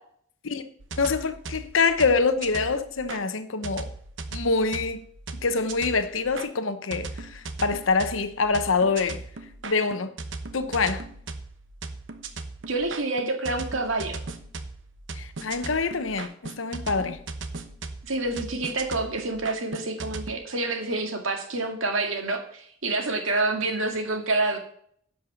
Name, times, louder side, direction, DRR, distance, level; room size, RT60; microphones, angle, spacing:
sound 1, 0.8-3.2 3.6-6.5 6.9-20.4, right 3 dB, 70° right, 1.0 m, -38 dB
voice 1, 1.0-3.9 4.3-5.0 5.4-7.1 7.6-9.2 9.6-10.1 10.5-11.0 15.2-16.3 16.6-17.2, left 4 dB, 80° left, 0.9 m, -25 dB
voice 2, 12.7-14.2 18.0-24.6, right 2 dB, 90° right, 2.0 m, -27 dB
11.0 x 5.6 x 6.9 m
head